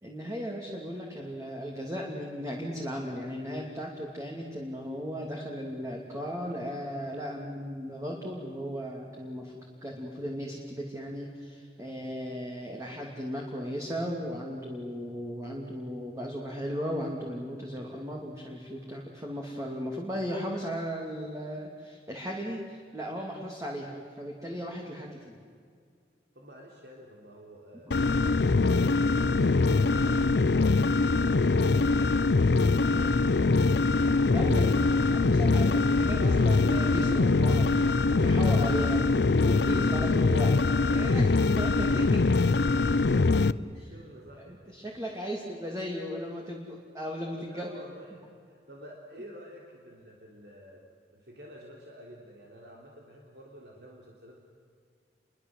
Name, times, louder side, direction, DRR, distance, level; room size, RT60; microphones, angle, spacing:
voice 1, 0.0-9.5 9.8-25.4 34.3-34.8 35.1-37.7 38.1-40.6 40.8-42.3 44.7-47.7, equal, 20° right, -1 dB, 2.8 m, -36 dB
voice 2, 26.3-31.8 32.5-33.9 34.4-34.8 42.6-44.8 45.2-45.5 47.4-54.4, equal, 65° right, -1 dB, 3.5 m, -49 dB
sound 1, 27.9-43.5, left 3 dB, 70° left, 0.6 m, -23 dB
29.0 x 23.5 x 7.9 m, 2.2 s
head